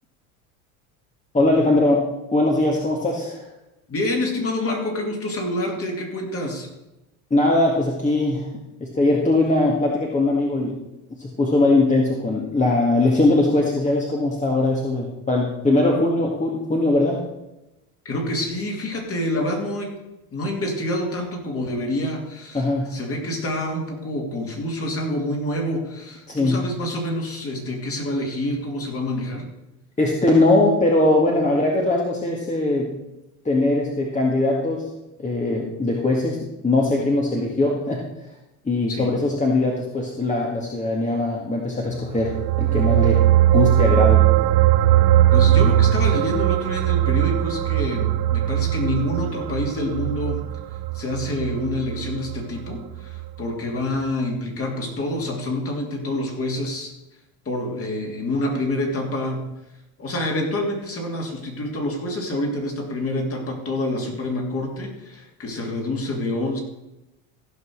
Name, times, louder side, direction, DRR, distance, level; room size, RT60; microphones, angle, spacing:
voice 1, 1.3-3.5 7.3-8.5 8.8-10.8 11.2-17.2 22.5-22.9 26.3-26.6 30.0-32.9 33.4-34.9 35.2-38.0 38.6-43.2 43.5-44.3, left 2 dB, 15° left, -1 dB, 1.9 m, -20 dB
voice 2, 3.9-6.7 18.0-19.9 20.3-29.5 38.9-39.1 45.3-50.4 50.9-56.9 57.4-59.5 60.0-66.6, left 1 dB, 30° left, 1 dB, 3.2 m, -27 dB
sound 1, 42.1-52.8 53.1-53.3, right 13 dB, 55° right, 0.9 m, -19 dB
15.5 x 5.5 x 6.4 m, 0.96 s
supercardioid pair, 105°, 43 cm